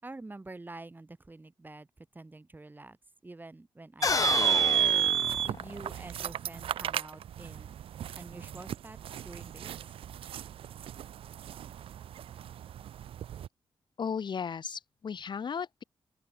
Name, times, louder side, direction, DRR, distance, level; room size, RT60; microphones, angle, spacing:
voice 1, 0.0-3.0 3.2-4.4 5.4-7.8 8.2-9.0 9.2-9.7, right 2 dB, 20° right, 3.8 m, -47 dB
sound 1, 4.0-6.0, left 5 dB, 40° left, 0.7 m, -31 dB
sound 2, 4.0-13.5, right 10 dB, 90° right, 2.4 m, -32 dB
voice 2, 14.0-15.8, left 6 dB, 55° left, 2.4 m, -35 dB
open air
cardioid pair, 90°, 9 cm